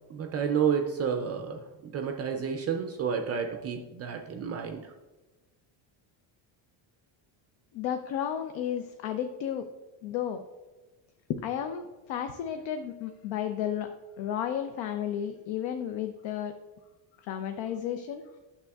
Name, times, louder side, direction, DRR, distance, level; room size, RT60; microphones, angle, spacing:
voice 1, 0.1-4.9, right 7 dB, 35° right, 4 dB, 0.4 m, -30 dB
voice 2, 7.7-9.6 10.0-10.4 11.4-13.9 14.2-16.5 17.2-18.2, left 9 dB, 70° left, 7 dB, 0.6 m, -33 dB
9.4 x 6.7 x 2.3 m, 1.2 s
cardioid pair, 155°, 47 cm